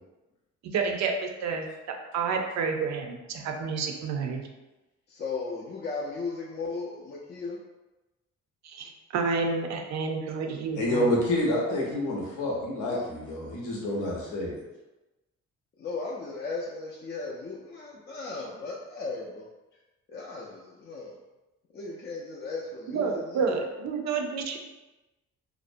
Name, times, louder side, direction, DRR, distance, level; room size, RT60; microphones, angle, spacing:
voice 1, 0.6-4.5 8.6-11.1 22.9-24.6, right 5 dB, 65° right, 3 dB, 0.5 m, -30 dB
voice 2, 5.1-7.6 12.9-13.1 15.8-19.4 20.1-21.2 21.7-23.6, left 3 dB, 35° left, -4 dB, 0.4 m, -36 dB
voice 3, 10.7-14.5, left 1 dB, 85° left, -3 dB, 0.7 m, -28 dB
2.4 x 2.0 x 2.5 m, 1.1 s
cardioid pair, 90°, 30 cm